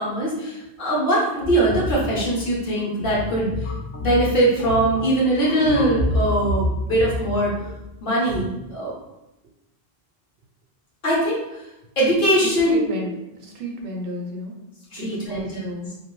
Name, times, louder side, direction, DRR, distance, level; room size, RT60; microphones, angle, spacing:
voice 1, 0.0-3.7 4.0-7.5 8.0-8.9 11.0-11.6 12.0-12.8 14.9-15.9, right 1 dB, 60° left, -6 dB, 1.1 m, -21 dB
sound 1, 1.4-8.5, left 1 dB, 85° left, 0.9 m, -29 dB
voice 2, 12.4-13.1 13.4-14.5 15.0-15.9, right 1 dB, 65° right, 0 dB, 0.7 m, -30 dB
2.6 x 2.6 x 3.0 m, 0.93 s
omnidirectional pair, 1.0 m